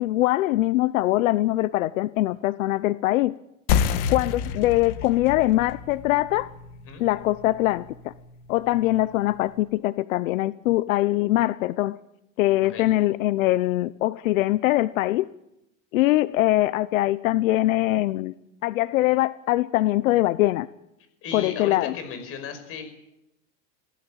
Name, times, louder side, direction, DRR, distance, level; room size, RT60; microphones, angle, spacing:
voice 1, 0.0-3.4 4.1-6.5 7.0-8.1 8.5-12.0 12.4-15.3 15.9-18.3 18.6-20.7 21.3-21.9, left 16 dB, 80° left, 16 dB, 0.8 m, -22 dB
sound 1, 3.7-8.8, left 8 dB, 55° left, 1.7 m, -29 dB
voice 2, 21.2-22.8, left 6 dB, 35° left, 8 dB, 5.5 m, -36 dB
23.0 x 17.0 x 8.8 m, 0.88 s
supercardioid pair, 160°, 40 cm